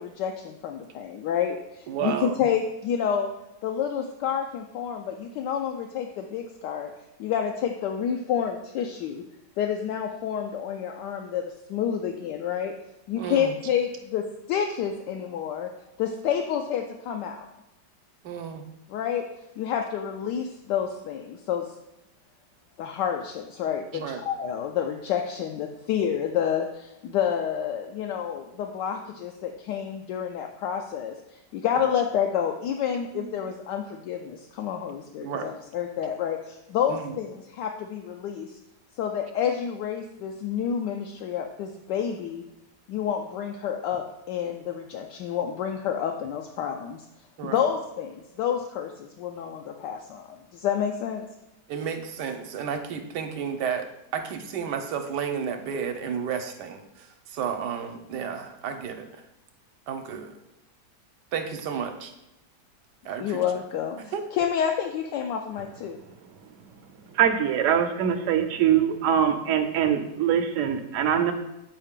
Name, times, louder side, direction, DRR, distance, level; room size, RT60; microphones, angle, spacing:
voice 1, 0.0-3.3 3.6-6.9 7.2-9.2 9.6-12.7 13.1-15.7 16.0-17.4 18.9-19.2 19.6-21.7 22.8-31.1 31.5-38.6 39.0-42.4 42.9-47.0 47.4-51.2 63.2-66.0, left 8 dB, 80° left, 3 dB, 1.2 m, -29 dB
voice 2, 1.9-2.4 13.2-13.5 18.2-18.6 23.9-24.2 31.8-31.9 33.1-33.3 35.2-35.5 36.9-37.2 47.4-47.6 51.7-59.1 59.9-60.3 61.3-62.1 63.0-63.4 64.1-64.2, right 7 dB, 75° right, 6 dB, 1.3 m, -32 dB
voice 3, 67.2-71.3, right 9 dB, 60° right, 6 dB, 0.9 m, -23 dB
8.3 x 4.8 x 3.6 m, 0.90 s
omnidirectional pair, 1.9 m